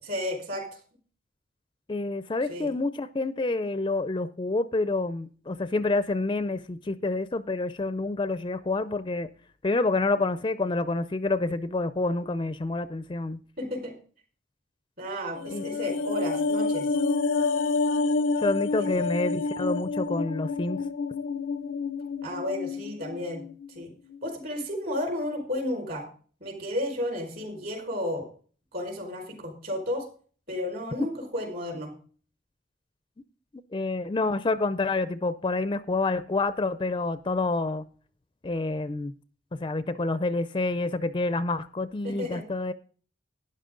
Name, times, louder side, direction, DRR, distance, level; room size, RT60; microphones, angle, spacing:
voice 1, 0.0-0.7 2.5-2.7 13.6-13.9 15.0-16.9 18.8-19.1 22.2-23.4 23.7-23.9 24.2-26.0 26.4-28.2 28.7-30.1 30.5-31.9 42.0-42.4, left 1 dB, 50° right, 2 dB, 4.8 m, -32 dB
voice 2, 1.9-9.3 9.6-13.4 15.5-15.6 18.4-20.8 33.7-37.8 38.4-39.1 39.5-42.7, left 3 dB, 25° left, 13 dB, 0.4 m, -28 dB
sound 1, 15.3-23.8 24.1-24.2, left 3 dB, 80° left, 0.5 m, -28 dB
12.0 x 10.0 x 3.8 m, 0.42 s
head